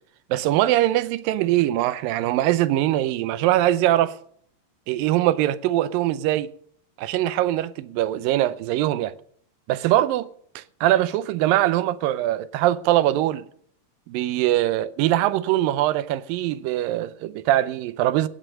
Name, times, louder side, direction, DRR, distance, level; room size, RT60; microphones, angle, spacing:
voice 1, 0.3-4.1 4.9-6.5 7.0-9.1 9.7-10.3 10.6-13.5 14.1-18.3, right 14 dB, 80° right, 2.4 m, -22 dB
17.0 x 8.4 x 6.4 m
omnidirectional pair, 4.1 m